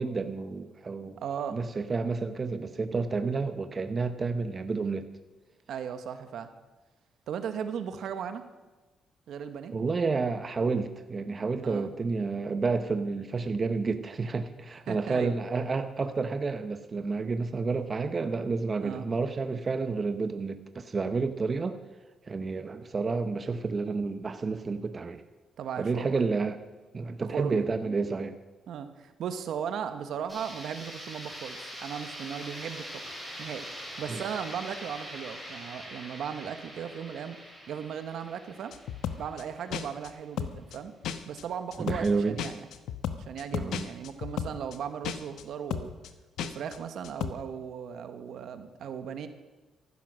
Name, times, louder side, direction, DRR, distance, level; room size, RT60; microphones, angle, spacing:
voice 1, 0.0-1.2 1.5-5.1 9.7-21.8 22.3-25.2 25.8-26.6 26.9-28.4 34.1-34.2 41.8-42.4 43.5-43.8, right 4 dB, 35° right, 9 dB, 1.0 m, -30 dB
voice 2, 1.2-1.6 5.7-6.5 7.3-8.4 9.3-9.7 11.6-11.9 14.9-15.3 18.8-19.1 25.6-26.2 27.2-27.6 28.7-33.7 34.0-37.4 37.7-38.8 39.2-40.9 41.2-42.6 43.2-45.9 46.4-49.3, right 8 dB, 70° right, 9 dB, 1.3 m, -37 dB
sound 1, 30.3-40.1, equal, 5° left, 6.1 m, -43 dB
sound 2, 38.7-39.4 39.7-40.1 40.4-40.8 41.0-41.4 41.7-42.1 42.4-44.8 45.0-45.4 45.7-46.1 46.4-46.8 47.0-47.3, left 8 dB, 80° left, 1.0 m, -34 dB
14.5 x 12.5 x 6.3 m, 1.2 s
cardioid pair, 90°, 0 cm